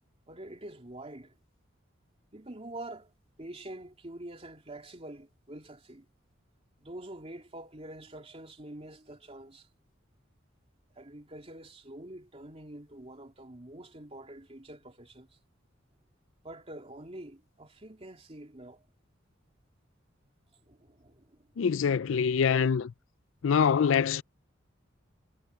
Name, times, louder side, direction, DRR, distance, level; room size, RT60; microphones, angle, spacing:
voice 1, 0.3-1.3 2.3-3.1 3.4-6.1 6.8-9.7 11.0-15.4 16.4-18.8 20.7-21.5, right 1 dB, 30° right, 3.0 m, -46 dB
voice 2, 21.6-22.9 23.4-24.2, left 6 dB, 75° left, 0.4 m, -25 dB
head